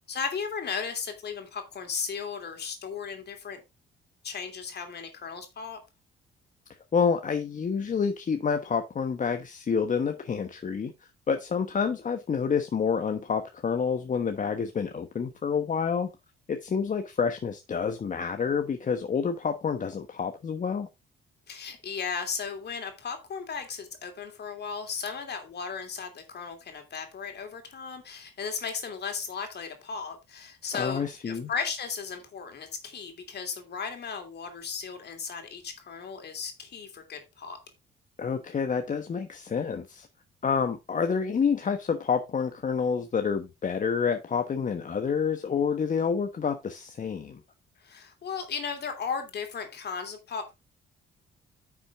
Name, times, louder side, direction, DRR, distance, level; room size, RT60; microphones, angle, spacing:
voice 1, 0.1-3.6 4.2-5.8 21.5-37.6 47.8-50.6, left 6 dB, 55° left, 6 dB, 2.9 m, -36 dB
voice 2, 6.9-10.9 11.3-16.1 16.5-20.9 30.7-31.5 38.2-40.1 40.4-47.4, left 6 dB, 40° left, 7 dB, 1.1 m, -28 dB
10.0 x 6.2 x 3.5 m, 0.23 s
cardioid pair, 90°, 20 cm